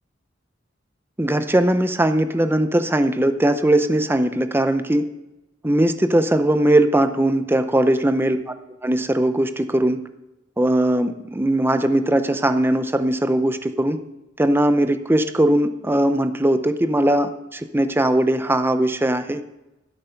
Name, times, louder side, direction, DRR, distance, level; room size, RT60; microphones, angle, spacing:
voice 1, 1.2-5.0 5.6-8.4 8.8-10.0 10.6-14.0 14.4-19.4, right 1 dB, 10° right, 9 dB, 0.6 m, -19 dB
13.5 x 8.2 x 5.7 m, 0.97 s
head